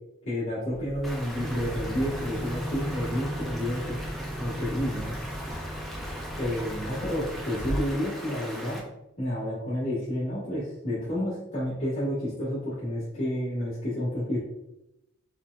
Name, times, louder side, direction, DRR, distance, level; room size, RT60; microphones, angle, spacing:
voice 1, 0.2-4.0 4.4-5.1 6.4-8.8 9.2-14.4, equal, 60° left, -13 dB, 1.4 m, -30 dB
Boom, 0.7-6.5, equal, 45° right, 1.0 m, -42 dB
Stream, 1.0-8.8, equal, ahead, 0.4 m, -40 dB
sound 1, 1.3-7.9, equal, 85° left, 1.3 m, -36 dB
4.3 x 2.1 x 2.3 m, 0.87 s
head